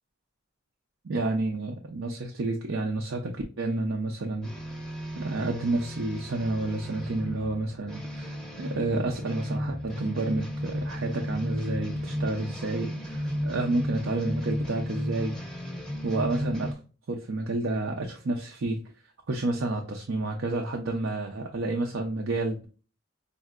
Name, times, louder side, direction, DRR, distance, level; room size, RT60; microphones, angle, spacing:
voice 1, 1.1-4.5 5.1-15.4 16.0-16.8 17.1-18.8 19.3-22.7, right 2 dB, 75° right, 1 dB, 0.6 m, -30 dB
sound 1, 4.4-16.7, equal, 5° left, 0.7 m, -34 dB
5.3 x 2.6 x 2.4 m, 0.35 s
head